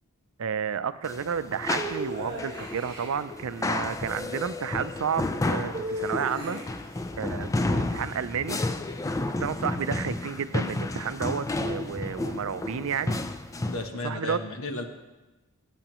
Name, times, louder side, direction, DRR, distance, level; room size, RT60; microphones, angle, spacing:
voice 1, 0.4-6.6 7.2-8.6 9.4-13.2 14.0-14.4, right 7 dB, 80° right, 14 dB, 0.4 m, -31 dB
sound 1, 1.0-13.9, left 2 dB, 15° left, 0.3 m, -31 dB
sound 2, 1.8-3.1 5.7-6.9, right 1 dB, 20° right, 2.3 m, -35 dB
voice 2, 13.7-14.9, left 2 dB, 80° left, 5 dB, 1.1 m, -33 dB
17.5 x 7.8 x 3.0 m, 1.1 s
head